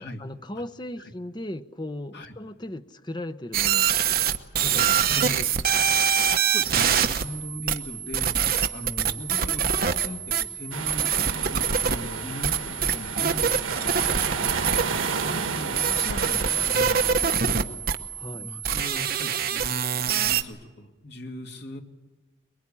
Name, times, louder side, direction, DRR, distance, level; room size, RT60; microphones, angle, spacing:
voice 1, 0.0-3.9 4.6-5.9 18.1-18.5, left 1 dB, 20° left, 10 dB, 0.8 m, -37 dB
sound 1, 3.5-20.4, right 7 dB, 50° right, 1.1 m, -25 dB
voice 2, 6.5-8.4 8.7-9.6 10.0-14.0 15.2-17.7 18.3-21.8, left 1 dB, 55° left, 3 dB, 2.5 m, -39 dB
sound 2, 10.7-17.1, right 5 dB, 85° right, 1.5 m, -31 dB
23.5 x 22.0 x 10.0 m, 1.2 s
head